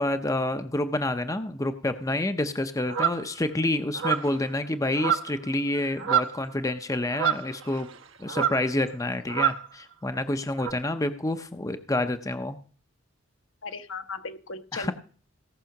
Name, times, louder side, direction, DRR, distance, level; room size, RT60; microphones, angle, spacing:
voice 1, 0.0-7.9 8.2-12.6 14.7-14.9, left 1 dB, 15° left, 9 dB, 0.7 m, -28 dB
sound 1, 2.9-3.2 3.9-4.4 4.9-5.5 5.7-6.4 7.1-8.0 8.3-8.7 9.3-9.7 10.6-10.7, right 8 dB, 70° right, 1.2 m, -27 dB
voice 2, 13.6-14.9, left 4 dB, 65° left, 8 dB, 1.2 m, -36 dB
17.0 x 6.2 x 5.9 m, 0.41 s
head